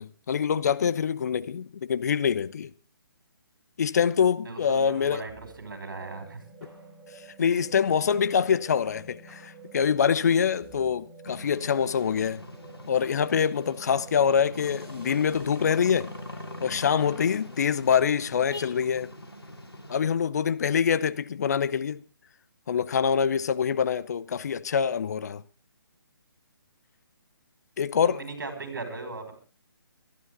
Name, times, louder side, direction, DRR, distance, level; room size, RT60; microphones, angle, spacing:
voice 1, 0.0-2.7 3.8-5.2 7.4-12.4 12.9-16.1 16.6-19.1 19.9-22.0 22.7-25.4 27.8-28.2, left 7 dB, 45° left, 0.8 m, -25 dB
voice 2, 4.4-5.3 5.6-6.4 7.4-7.7 28.0-29.3, right 3 dB, 60° right, 5.6 m, -38 dB
sound 1, 5.3-19.7, right 3 dB, 10° right, 6.0 m, -50 dB
sound 2, 11.2-20.0, left 1 dB, 85° left, 2.8 m, -42 dB
23.5 x 12.0 x 3.8 m
figure-of-eight pair, 140°, 13 cm